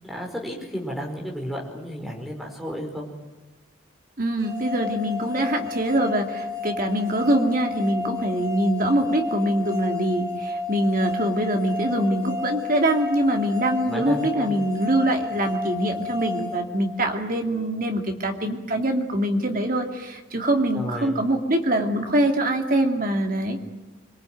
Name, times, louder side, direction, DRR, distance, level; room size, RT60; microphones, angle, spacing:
voice 1, 0.0-3.1 13.8-14.5 20.7-21.2, equal, ahead, 0 dB, 5.1 m, -32 dB
voice 2, 4.2-23.6, right 1 dB, 40° right, 4 dB, 2.7 m, -24 dB
sound 1, 4.4-17.4, left 4 dB, 15° right, 2.7 m, -32 dB
25.5 x 23.0 x 9.3 m, 1.2 s
head